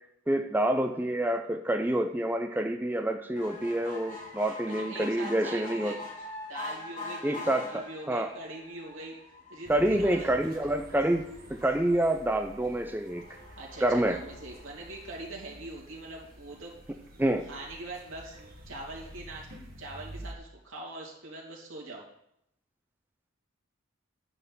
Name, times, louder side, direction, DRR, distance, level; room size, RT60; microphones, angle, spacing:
voice 1, 0.3-5.9 7.2-7.8 8.1-8.3 9.7-11.2 11.5-13.2 13.8-14.2 17.2-17.4, right 1 dB, 10° right, 5 dB, 0.4 m, -27 dB
sound 1, 3.4-16.0 16.5-16.6 16.9-17.0 17.3-17.4, left 2 dB, 40° left, 2.1 m, -45 dB
voice 2, 4.7-6.0 6.5-9.2 9.5-10.3 13.6-16.7 17.5-19.5 19.8-22.1, right 2 dB, 75° right, -3 dB, 2.7 m, -42 dB
sound 2, 9.6-20.3, right 1 dB, 45° right, 1.5 m, -49 dB
10.0 x 4.4 x 7.1 m, 0.76 s
head